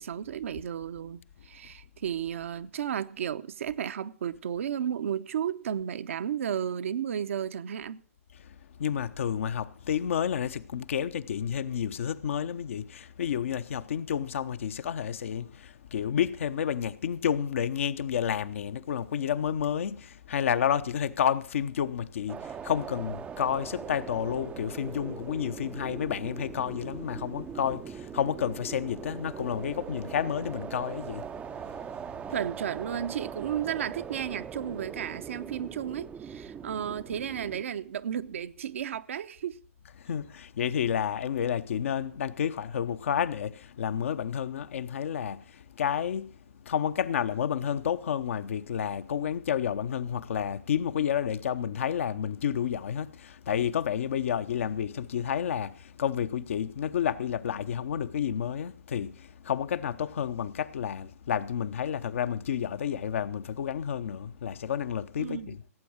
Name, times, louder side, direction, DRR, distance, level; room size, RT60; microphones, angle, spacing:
voice 1, 0.0-8.0 32.3-39.6 65.2-65.6, right 9 dB, 60° right, 0.8 m, -33 dB
voice 2, 8.4-32.3 40.0-65.6, left 8 dB, 60° left, 0.9 m, -30 dB
sound 1, 22.3-37.6, right 7 dB, 15° right, 0.5 m, -41 dB
17.0 x 8.6 x 6.3 m
figure-of-eight pair, 115°, 8 cm